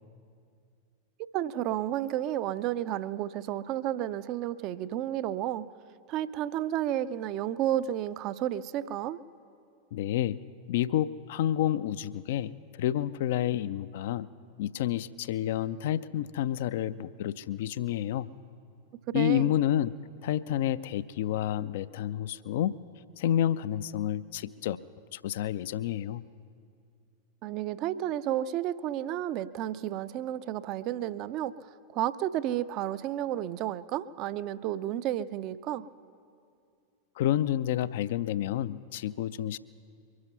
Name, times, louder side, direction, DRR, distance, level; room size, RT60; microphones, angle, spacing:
voice 1, 1.3-5.7 6.1-9.2 19.1-19.5 27.4-31.5 31.9-35.9, right 12 dB, 40° right, 16 dB, 0.4 m, -31 dB
voice 2, 9.9-10.4 10.7-14.3 14.6-18.3 19.1-19.9 20.2-22.8 23.2-24.8 25.1-26.3 37.2-39.6, left 11 dB, 55° left, 16 dB, 0.3 m, -29 dB
23.0 x 11.0 x 5.6 m, 2.4 s
figure-of-eight pair, 90°, 0 cm